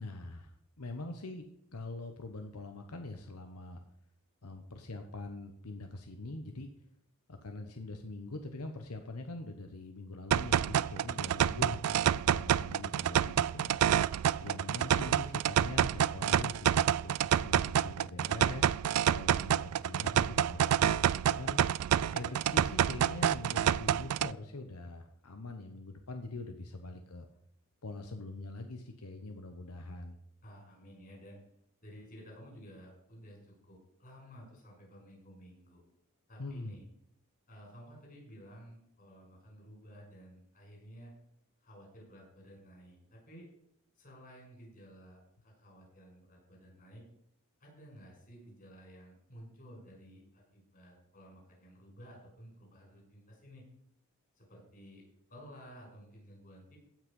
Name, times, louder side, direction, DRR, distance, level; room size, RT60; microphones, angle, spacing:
voice 1, 0.0-3.8 4.4-6.7 7.3-13.9 14.4-21.6 22.1-27.3 27.8-30.2 36.4-36.7, left 2 dB, 90° left, 6 dB, 1.1 m, -43 dB
sound 1, 10.3-24.3, right 9 dB, 90° right, 0.3 m, -28 dB
voice 2, 22.1-22.4 30.4-31.4 31.8-35.8 36.3-36.9 37.5-41.1 41.6-43.5 44.0-47.0 47.6-53.6 54.4-56.8, equal, 40° left, -1 dB, 5.8 m, -53 dB
16.0 x 6.1 x 5.4 m, 0.74 s
head